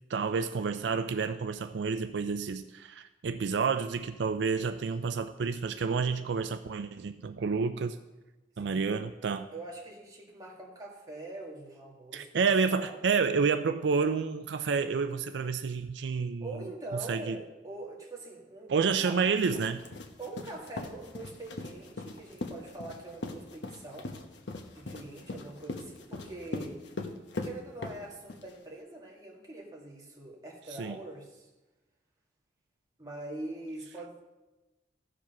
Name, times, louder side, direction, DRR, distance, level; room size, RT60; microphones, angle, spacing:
voice 1, 0.1-8.0 8.6-9.5 12.1-16.5 17.1-17.4 18.7-19.8 30.8-30.9, right 5 dB, 80° right, 9 dB, 0.4 m, -29 dB
voice 2, 8.6-9.0 9.5-12.3 12.7-13.0 16.4-19.2 20.2-24.1 24.7-26.8 27.4-31.5 33.0-34.2, right 2 dB, 20° right, -3 dB, 2.0 m, -43 dB
sound 1, 19.3-28.5, left 2 dB, 80° left, 1.0 m, -40 dB
14.5 x 5.0 x 5.9 m, 1.1 s
head